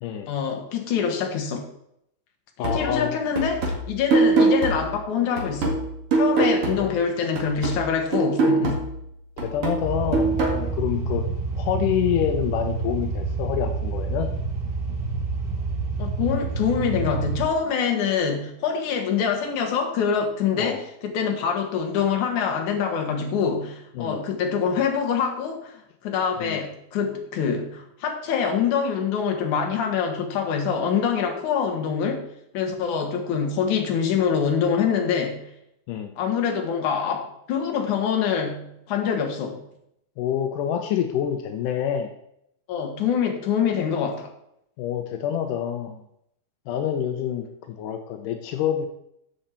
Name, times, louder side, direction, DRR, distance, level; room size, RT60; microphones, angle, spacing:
voice 1, 0.3-1.7 2.6-5.8 6.1-8.8 16.0-32.3 32.5-35.4 36.2-39.6 42.7-44.3, left 7 dB, 60° left, 3 dB, 2.5 m, -25 dB
voice 2, 2.6-3.2 6.4-6.9 9.4-11.2 11.6-14.3 20.6-20.8 24.0-24.2 26.4-26.6 35.9-36.1 40.2-42.1 44.8-46.0 46.7-48.9, left 9 dB, 80° left, 6 dB, 1.9 m, -27 dB
sound 1, 2.6-7.1 7.4-10.6, right 3 dB, 45° right, 2.4 m, -24 dB
sound 2, 9.8-17.4, right 3 dB, 90° right, 3.8 m, -28 dB
14.0 x 5.5 x 4.4 m, 0.76 s
omnidirectional pair, 4.4 m